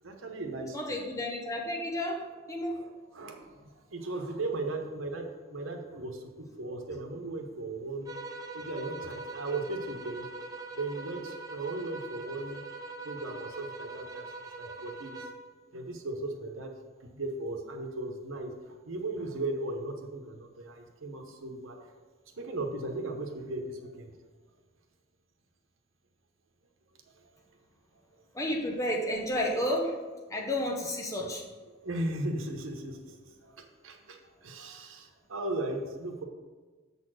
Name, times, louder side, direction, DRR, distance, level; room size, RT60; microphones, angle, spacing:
voice 1, 0.0-0.8 2.7-8.1 8.5-10.3 10.7-12.6 13.0-15.3 15.7-16.7 17.0-21.9 22.4-24.1 27.2-27.3 31.2-31.3 31.8-36.2, right 2 dB, 90° right, 4 dB, 1.0 m, -37 dB
voice 2, 0.7-2.8 28.3-30.0 30.3-31.4, left 1 dB, 15° left, 0 dB, 1.0 m, -31 dB
sound 1, 8.1-15.5, right 3 dB, 20° right, 0.6 m, -42 dB
7.0 x 4.2 x 6.3 m, 1.3 s
head